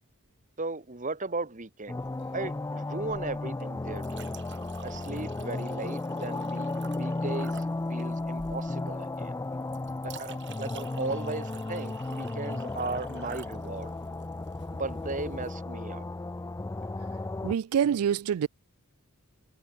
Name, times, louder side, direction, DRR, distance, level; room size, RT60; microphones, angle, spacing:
voice 1, 0.6-2.0 2.3-4.3 4.8-9.4 10.0-13.9 14.7-16.0, right 3 dB, 35° right, 1.8 m, -36 dB
sound 1, 1.9-17.5, left 2 dB, 15° left, 0.3 m, -34 dB
Chink clink, 2.0-15.6, right 5 dB, 55° right, 7.3 m, -51 dB
voice 2, 17.4-18.5, right 8 dB, 90° right, 0.3 m, -26 dB
head